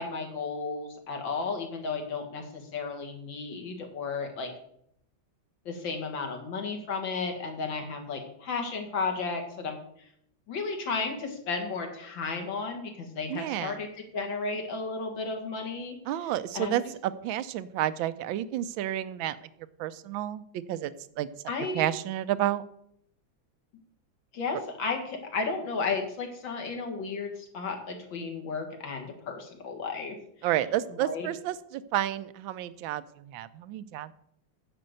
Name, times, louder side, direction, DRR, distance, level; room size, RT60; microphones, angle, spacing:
voice 1, 0.0-4.5 5.7-9.8 10.5-13.9 14.1-16.0 16.2-16.8 21.5-21.9 24.3-30.2 31.0-31.3, left 4 dB, 75° left, 3 dB, 2.4 m, -33 dB
voice 2, 13.3-13.8 16.1-19.4 19.8-20.4 20.7-20.9 21.2-21.3 21.7-22.6 30.4-34.1, right 12 dB, 85° right, 15 dB, 1.4 m, -30 dB
9.6 x 5.2 x 7.8 m, 0.72 s
omnidirectional pair, 2.1 m